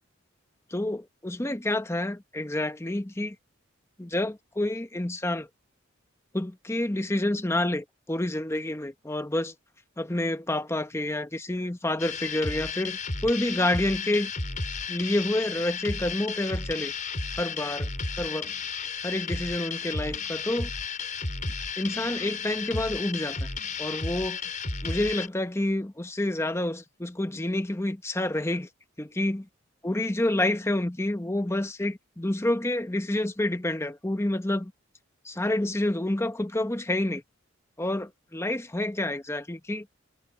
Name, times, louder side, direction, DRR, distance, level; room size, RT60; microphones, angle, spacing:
voice 1, 0.7-3.4 4.0-5.5 6.3-9.5 10.0-14.3 14.9-16.9 17.4-17.9 18.2-18.5 19.0-20.7 21.8-23.5 23.8-24.4 24.8-28.7 29.0-29.4 29.8-34.7 35.2-37.2 37.8-39.9, left 1 dB, 15° left, 0.8 m, -28 dB
sound 1, 12.0-25.3, left 4 dB, 40° left, 5.5 m, -33 dB
head